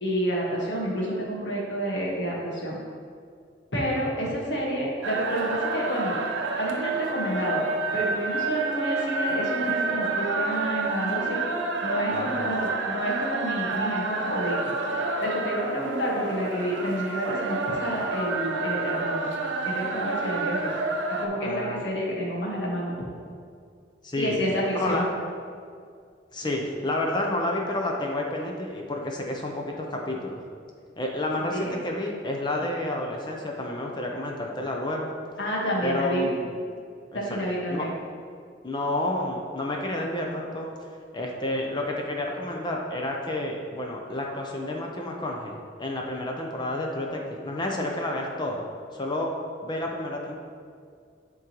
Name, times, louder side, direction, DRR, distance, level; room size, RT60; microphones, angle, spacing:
voice 1, 0.0-2.8 3.7-6.2 6.6-7.6 7.9-11.4 11.8-14.7 15.0-19.3 19.6-20.7 21.2-23.1 24.2-25.1 31.5-31.8 35.4-36.3 37.1-37.9, equal, 75° left, -4 dB, 1.5 m, -29 dB
sound 1, 5.0-21.3, right 3 dB, 80° right, 0.6 m, -29 dB
voice 2, 12.1-12.5 21.4-21.8 24.0-24.4 24.7-25.0 26.3-30.4 31.0-35.1 35.8-36.6 37.1-37.2 37.7-37.9 38.6-40.7 41.1-48.7 48.9-49.3 49.6-50.4, left 1 dB, 25° left, 0 dB, 0.6 m, -30 dB
10.5 x 3.7 x 3.0 m, 2.2 s
head